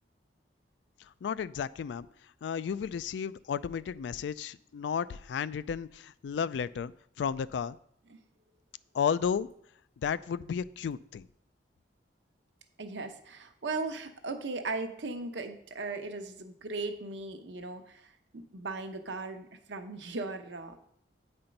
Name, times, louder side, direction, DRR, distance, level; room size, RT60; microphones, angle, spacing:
voice 1, 1.2-2.1 2.4-6.9 7.2-7.8 8.9-9.5 10.0-11.3, left 7 dB, 70° left, 17 dB, 0.3 m, -33 dB
voice 2, 12.8-20.8, right 3 dB, 75° right, 6 dB, 0.8 m, -38 dB
8.7 x 4.4 x 5.2 m, 0.68 s
head